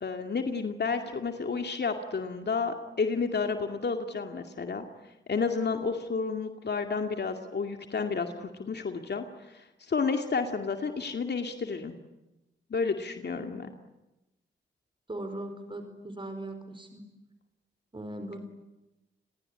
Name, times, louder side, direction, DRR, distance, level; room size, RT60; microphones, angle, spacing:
voice 1, 0.0-4.9 5.3-12.0 12.7-13.7, left 4 dB, 60° left, 5 dB, 2.4 m, -31 dB
voice 2, 15.1-17.0 17.9-18.4, right 1 dB, 25° right, 7 dB, 4.7 m, -39 dB
28.0 x 21.0 x 9.7 m, 0.99 s
cardioid pair, 55°, 20 cm